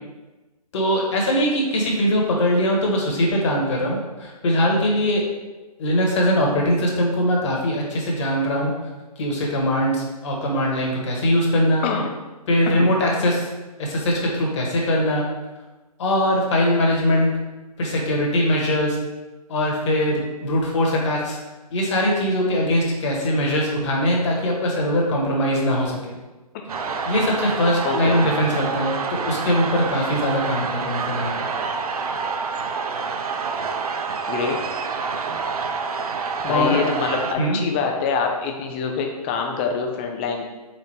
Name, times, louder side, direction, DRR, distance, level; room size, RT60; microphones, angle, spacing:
voice 1, 0.7-5.2 5.8-8.7 9.2-11.9 12.5-13.5 13.8-15.2 16.0-17.3 17.8-19.0 19.5-21.4 21.7-26.2 27.0-31.5 36.4-36.8 37.4-37.6, equal, 50° left, -2 dB, 1.3 m, -21 dB
sound 1, 26.7-37.3, right 5 dB, 70° right, 0.5 m, -27 dB
voice 2, 27.8-28.2 34.3-34.6 36.4-40.5, left 5 dB, 20° left, 3 dB, 0.4 m, -25 dB
4.4 x 3.7 x 3.3 m, 1.1 s
hypercardioid pair, 140°, 20 cm